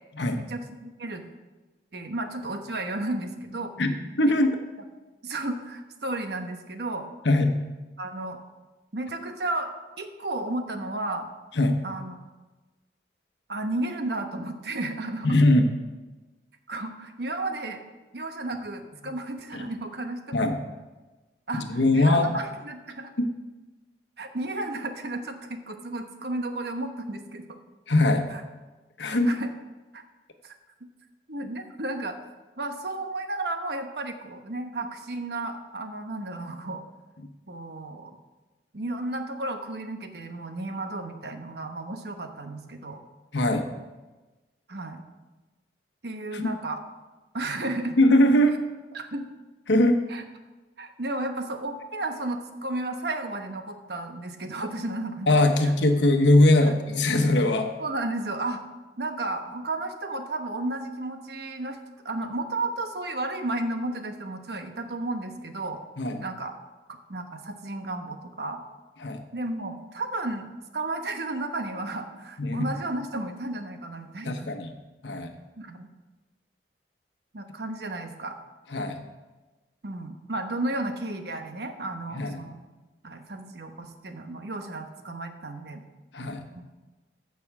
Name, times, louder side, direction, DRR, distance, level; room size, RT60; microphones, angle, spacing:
voice 1, 0.3-1.2 1.9-3.7 5.2-7.1 8.0-8.4 8.9-9.7 10.0-11.3 11.8-12.2 13.5-15.4 16.7-17.8 18.1-20.4 21.5-23.1 24.2-27.6 28.3-28.4 29.0-29.5 29.9-30.0 30.4-30.6 31.3-32.2 32.6-36.8 37.5-38.2 38.7-43.0 44.7-45.0 46.0-46.8 47.3-48.0 48.9-49.2 50.1-50.2 50.8-55.3 56.6-56.7 57.8-58.6 59.0-61.8 62.0-65.8 66.2-66.6 66.9-68.6 69.3-74.5 75.6-75.9 77.3-78.4 79.8-82.6 83.0-85.8 86.6-86.7, right 2 dB, 65° right, 6 dB, 1.1 m, -33 dB
voice 2, 3.8-4.5 7.2-7.6 11.6-11.8 15.2-15.7 19.5-19.6 20.3-20.6 21.6-22.3 23.2-23.3 27.9-28.3 29.0-29.4 43.3-43.7 46.3-46.5 48.0-48.6 49.7-50.0 55.3-57.7 66.0-66.2 69.0-69.2 72.4-72.7 74.2-74.7 75.0-75.3 78.7-79.0 82.1-82.4 86.1-86.4, left 1 dB, 90° left, 6 dB, 1.1 m, -21 dB
14.5 x 6.1 x 4.8 m, 1.2 s
head